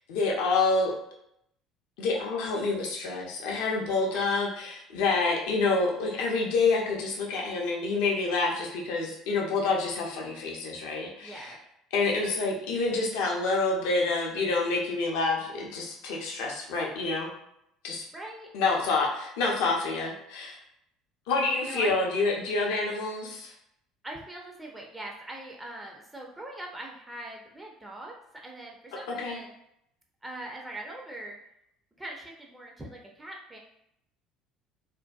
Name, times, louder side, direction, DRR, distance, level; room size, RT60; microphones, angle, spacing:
voice 1, 0.1-0.9 2.0-11.5 11.9-17.3 17.8-18.0 18.5-20.5 21.3-23.5 29.2-29.4, left 3 dB, 60° left, -1 dB, 0.5 m, -27 dB
voice 2, 11.2-11.6 18.1-18.5 21.6-21.9 24.0-29.5 30.2-31.4 32.0-33.6, right 1 dB, 10° right, -1 dB, 0.5 m, -42 dB
2.5 x 2.1 x 2.3 m, 0.77 s
figure-of-eight pair, 60°, 0 cm